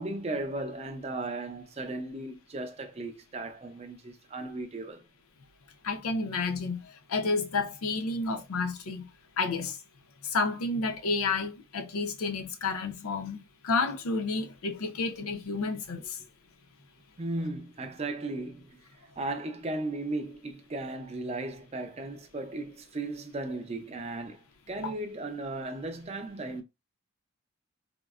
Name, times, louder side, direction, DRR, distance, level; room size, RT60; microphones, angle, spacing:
voice 1, 0.0-5.1 17.2-18.8 19.2-26.6, right 2 dB, 30° right, 0.5 m, -36 dB
voice 2, 5.8-9.1 9.4-9.8 10.2-16.2 24.8-24.9, left 3 dB, 90° left, 0.5 m, -30 dB
3.5 x 2.0 x 2.3 m
head